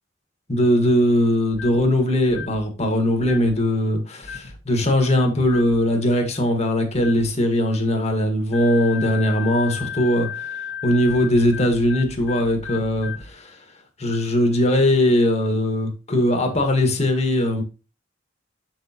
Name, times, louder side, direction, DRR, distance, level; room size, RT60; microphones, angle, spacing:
voice 1, 0.5-10.6 10.8-13.6 14.0-17.6, left 1 dB, 35° left, 1.6 m, -20 dB
sound 1, 1.5-1.9 2.3-2.6 3.2-3.6 4.2-4.6 5.4-5.8 6.9-7.3 8.5-13.3, left 7 dB, 60° left, 1.6 m, -34 dB
7.7 x 6.2 x 2.9 m
head